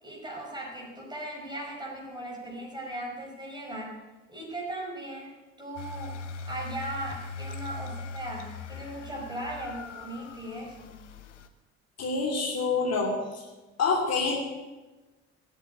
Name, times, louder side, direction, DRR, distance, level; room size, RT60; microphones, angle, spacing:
voice 1, 0.0-4.0 4.3-5.3 5.6-6.2 6.5-11.1, right 1 dB, 10° right, -2 dB, 5.2 m, -38 dB
sound 1, 5.8-11.5, left 4 dB, 75° left, 1.0 m, -41 dB
voice 2, 12.0-13.4 13.8-14.4, left 4 dB, 45° left, -1 dB, 2.9 m, -27 dB
17.0 x 8.2 x 9.3 m, 1.2 s
figure-of-eight pair, 50°, 36 cm